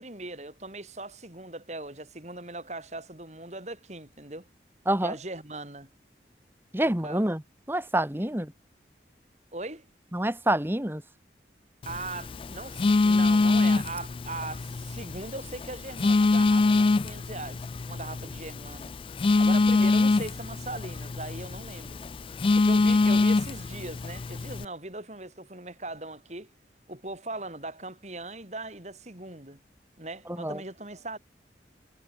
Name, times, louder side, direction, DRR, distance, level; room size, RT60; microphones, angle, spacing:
voice 1, 0.0-4.5 5.0-5.9 6.8-7.3 8.2-8.5 9.5-9.9 11.8-18.9 19.4-22.0 22.6-26.5 26.9-29.6 30.0-31.2, right 2 dB, 40° right, 5.0 m, -39 dB
voice 2, 6.7-7.4 7.7-8.5 10.1-11.0 30.4-30.6, right 1 dB, 15° right, 1.7 m, -27 dB
Telephone, 11.8-24.6, left 3 dB, 30° left, 0.3 m, -25 dB
head